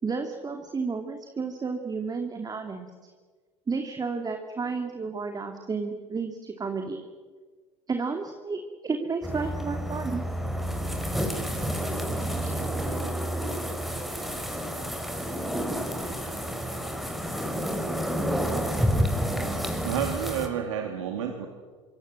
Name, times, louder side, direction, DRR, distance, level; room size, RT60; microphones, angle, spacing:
voice 1, 0.0-2.9 3.7-7.0 7.9-10.2, right 4 dB, 25° right, 5 dB, 2.8 m, -32 dB
sound 1, 9.2-20.5, equal, ahead, 4.9 m, -29 dB
voice 2, 19.8-21.5, right 8 dB, 75° right, 3 dB, 2.9 m, -30 dB
26.0 x 25.0 x 7.8 m, 1.5 s
hypercardioid pair, 70°, 16 cm